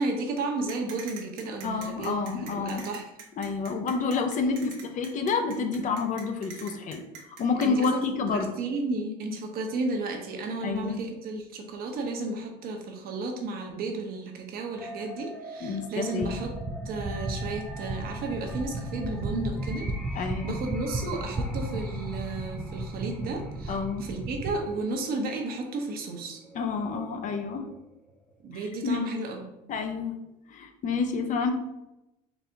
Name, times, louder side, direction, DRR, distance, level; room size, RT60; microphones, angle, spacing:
voice 1, 0.0-3.1 7.6-16.5 16.8-19.9 20.1-26.4 28.4-29.5, right 3 dB, 55° right, 3 dB, 0.9 m, -33 dB
sound 1, 0.7-7.9, right 6 dB, 80° right, 0.9 m, -44 dB
voice 2, 1.6-2.8 3.4-7.0 7.4-8.5 10.6-11.0 15.6-16.4 20.2-20.5 23.7-24.1 26.5-27.7 28.8-29.0 29.7-30.2 30.5-31.5, left 4 dB, 45° left, 6 dB, 0.6 m, -29 dB
sound 2, 14.7-28.7, equal, ahead, 0.7 m, -46 dB
sound 3, 16.2-24.6, right 1 dB, 15° right, 0.3 m, -34 dB
4.0 x 2.7 x 3.4 m, 0.92 s
supercardioid pair, 100°, 19 cm